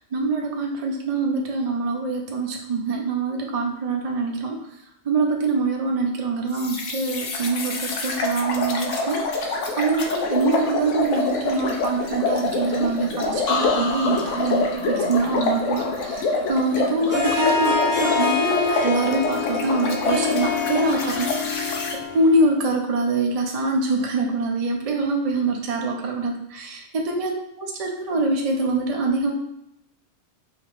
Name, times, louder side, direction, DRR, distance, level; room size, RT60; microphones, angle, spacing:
voice 1, 0.1-4.6 5.1-21.3 21.6-21.8 22.1-29.3, right 3 dB, 45° right, 1 dB, 0.5 m, -24 dB
sound 1, 6.5-22.0, left 3 dB, 80° left, 1.0 m, -26 dB
sound 2, 13.5-17.3 17.6-18.1, left 3 dB, 60° left, 0.4 m, -32 dB
Harp, 17.1-22.6, left 5 dB, 40° left, 1.1 m, -26 dB
4.6 x 2.4 x 3.2 m, 0.81 s
omnidirectional pair, 1.2 m